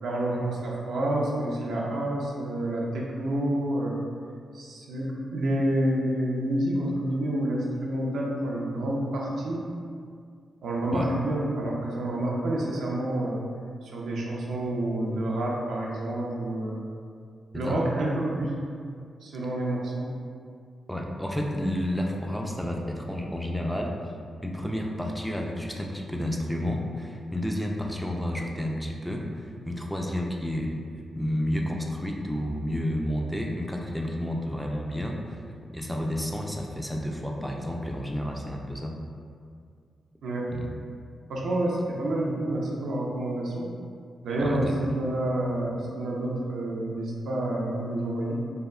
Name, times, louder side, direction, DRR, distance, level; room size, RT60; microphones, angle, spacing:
voice 1, 0.0-4.0 4.5-9.6 10.6-13.4 13.8-16.8 17.5-18.6 19.2-20.1 40.2-40.5 41.3-43.7 44.2-48.3, right 1 dB, 80° right, -3 dB, 0.4 m, -28 dB
voice 2, 20.9-23.9 24.4-30.7 31.2-35.4 35.7-38.9 40.5-40.7 44.4-44.7, equal, ahead, 0 dB, 0.3 m, -31 dB
3.4 x 2.0 x 2.3 m, 2.2 s
cardioid pair, 60°, 0 cm